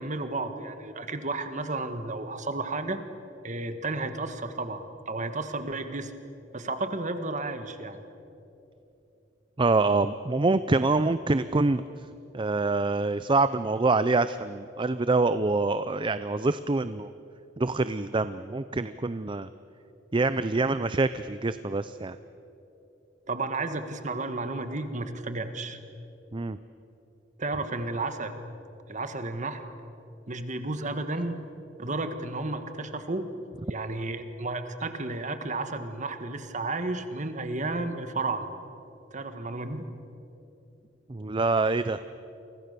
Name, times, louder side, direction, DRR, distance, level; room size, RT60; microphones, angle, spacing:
voice 1, 0.0-3.0 3.4-6.1 6.5-8.0 23.3-25.8 27.4-28.4 28.9-29.6 30.3-31.4 31.8-33.3 33.7-38.5 39.1-39.9, right 2 dB, 40° right, 8 dB, 1.8 m, -32 dB
voice 2, 9.6-11.8 12.3-17.1 17.6-19.5 20.1-22.2 26.3-26.6 41.1-42.0, right 3 dB, 25° right, 13 dB, 0.5 m, -25 dB
30.0 x 24.5 x 6.8 m, 2.9 s
head